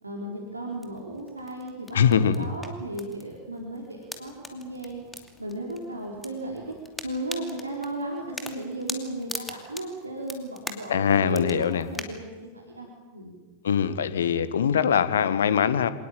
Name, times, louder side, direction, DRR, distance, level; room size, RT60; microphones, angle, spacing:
voice 1, 0.0-5.0 5.4-6.6 7.0-13.3, right 1 dB, 80° right, 0 dB, 4.0 m, -35 dB
sound 1, 0.7-12.0, left 2 dB, 5° left, 2.6 m, -43 dB
voice 2, 1.9-2.5 10.9-11.9 13.6-15.9, left 8 dB, 65° left, 13 dB, 1.6 m, -22 dB
26.0 x 19.0 x 8.9 m, 1.3 s
figure-of-eight pair, 90°, 0 cm